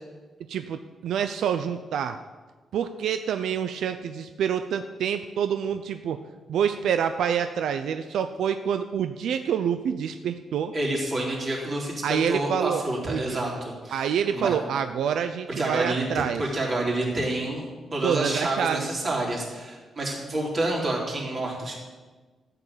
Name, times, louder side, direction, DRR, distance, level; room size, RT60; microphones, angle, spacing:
voice 1, 0.5-2.2 2.7-6.2 6.5-10.7 12.0-12.8 13.1-13.4 13.9-16.4 18.0-18.9, right 8 dB, 85° right, 9 dB, 0.6 m, -27 dB
voice 2, 10.7-14.6 15.6-16.0 16.4-21.8, right 1 dB, 35° right, -3 dB, 3.7 m, -28 dB
14.0 x 6.9 x 8.8 m, 1.3 s
wide cardioid pair, 155°, 0 cm